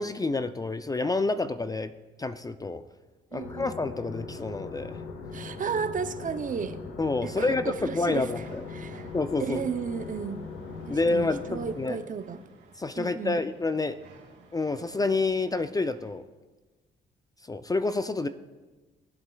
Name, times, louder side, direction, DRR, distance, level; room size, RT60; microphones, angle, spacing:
voice 1, 0.0-1.9 2.2-2.8 3.3-5.0 7.0-8.6 9.1-9.6 10.9-12.0 12.8-14.0 14.5-16.2 17.5-18.3, left 3 dB, 20° left, 11 dB, 0.4 m, -28 dB
voice 2, 3.3-3.7 5.3-6.8 7.2-8.3 8.7-9.1 9.4-10.4 10.9-12.4 13.0-13.4, right 6 dB, 40° right, 11 dB, 0.6 m, -33 dB
sound 1, 3.4-11.8, left 4 dB, 90° left, 1.2 m, -40 dB
sound 2, 8.2-16.1, right 3 dB, 75° right, 2.4 m, -54 dB
17.0 x 7.9 x 2.3 m, 1.2 s
cardioid pair, 90°, 20 cm